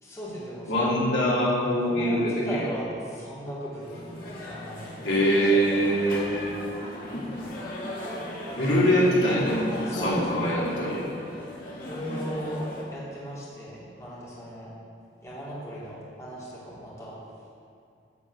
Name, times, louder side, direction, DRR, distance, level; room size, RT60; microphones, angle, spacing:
voice 1, 0.0-0.9 1.7-4.9 8.7-8.9 9.8-10.6 11.7-12.6 12.9-14.7 15.2-17.1, equal, 15° left, -9 dB, 3.1 m, -37 dB
voice 2, 0.7-2.6 5.0-6.5 7.1-7.2 8.6-9.6 9.9-11.0, equal, 75° left, -6 dB, 2.8 m, -23 dB
sound 1, 3.8-12.8, left 1 dB, 50° left, 2.2 m, -36 dB
11.0 x 5.3 x 8.1 m, 2.4 s
head